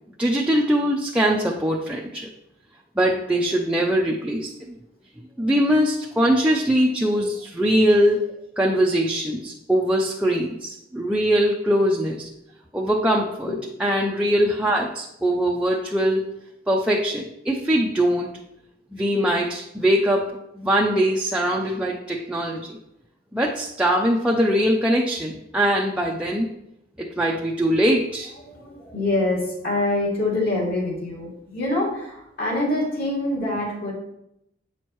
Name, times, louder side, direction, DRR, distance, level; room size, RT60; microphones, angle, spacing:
voice 1, 0.2-2.3 3.0-4.5 5.4-8.3 8.6-12.3 12.7-13.5 13.8-16.3 16.7-18.3 18.9-20.3 20.6-22.8 23.3-26.5 27.0-28.3, equal, 5° right, -3 dB, 0.5 m, -22 dB
voice 2, 28.4-33.9, left 2 dB, 50° left, -4 dB, 2.5 m, -25 dB
8.0 x 6.2 x 3.0 m, 0.82 s
head